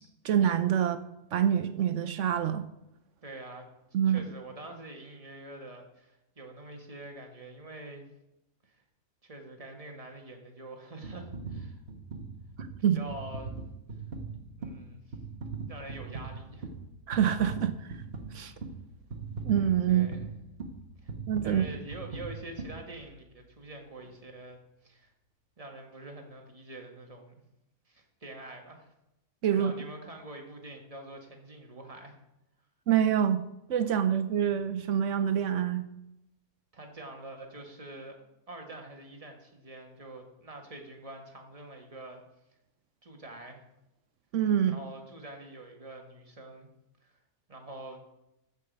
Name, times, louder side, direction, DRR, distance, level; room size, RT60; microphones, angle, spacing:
voice 1, 0.2-1.0 1.3-2.6 3.9-4.2 12.8-13.0 17.1-17.9 18.3-18.5 19.5-20.1 21.3-21.6 29.4-29.7 32.9-33.4 33.7-35.8 44.3-44.8, right 9 dB, 65° right, 0.8 m, -26 dB
voice 2, 3.2-3.7 4.0-8.1 8.6-8.7 9.2-11.8 12.8-13.5 14.6-15.1 15.7-16.7 19.9-20.3 21.0-21.1 21.4-25.1 25.6-27.3 27.9-28.9 29.5-32.1 36.7-42.2 43.0-43.6 44.7-46.7 47.0-47.2 47.5-48.0, right 2 dB, 25° right, 1.5 m, -45 dB
sound 1, 11.0-23.4 24.0-24.1, right 4 dB, 45° right, 1.4 m, -41 dB
14.0 x 5.7 x 5.2 m
omnidirectional pair, 1.6 m